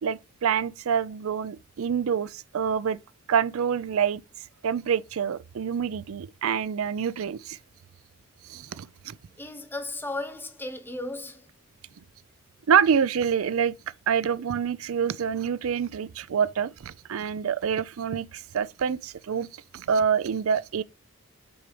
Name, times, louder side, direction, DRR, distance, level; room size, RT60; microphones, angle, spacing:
voice 1, 0.0-3.0 3.3-4.2 4.6-7.6 8.5-9.1 12.7-13.7 14.1-19.5 19.7-20.8, right 7 dB, 80° right, 0.4 m, -26 dB
voice 2, 9.4-11.5, left 2 dB, 10° left, 0.9 m, -35 dB
7.9 x 4.7 x 5.0 m
head